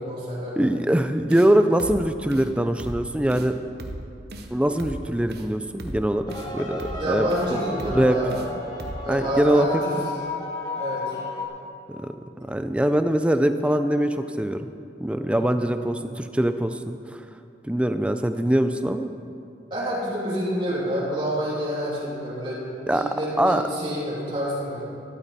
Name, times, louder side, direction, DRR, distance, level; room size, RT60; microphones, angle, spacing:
voice 1, 0.0-0.5 6.9-8.5 9.0-9.9 10.8-11.0 15.2-15.5 19.7-22.6 22.9-24.9, equal, 25° right, -8 dB, 2.8 m, -28 dB
voice 2, 0.6-3.6 4.5-6.8 7.1-7.6 7.9-8.2 9.1-9.7 11.9-12.1 12.5-14.7 15.0-17.0 17.6-19.1 22.9-23.0 23.4-23.6, right 1 dB, 5° right, 8 dB, 0.4 m, -22 dB
sound 1, 1.3-1.5 1.8-2.0 2.3-2.5 2.8-3.0 3.3-3.5 3.8-4.0 4.3-4.5 4.8-5.0 5.3-5.5 5.8-6.0 6.3-6.5 6.8-7.0 7.3-7.5 7.8-8.0 8.3-8.5 8.8-9.0, right 1 dB, 65° right, 0.9 m, -36 dB
sound 2, 6.3-11.5, left 2 dB, 25° left, 1.3 m, -33 dB
13.0 x 12.0 x 4.1 m, 2.6 s
head